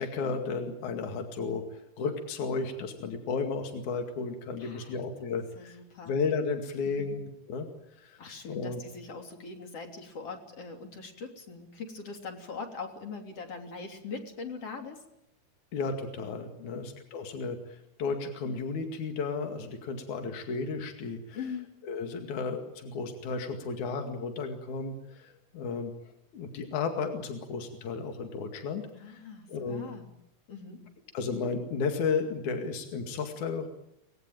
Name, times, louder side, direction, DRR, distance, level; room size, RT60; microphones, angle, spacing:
voice 1, 0.0-1.7 2.0-5.8 6.1-7.7 8.0-8.8 15.7-21.4 21.9-25.9 26.3-29.2 29.5-29.9 31.1-33.7, left 4 dB, 70° left, 5 dB, 3.6 m, -33 dB
voice 2, 4.6-5.0 5.6-6.2 6.9-7.2 8.2-15.0 16.6-16.9 21.3-21.7 28.9-30.1 30.5-30.8, left 4 dB, 50° left, 4 dB, 4.2 m, -42 dB
24.0 x 20.5 x 9.1 m, 0.80 s
omnidirectional pair, 3.6 m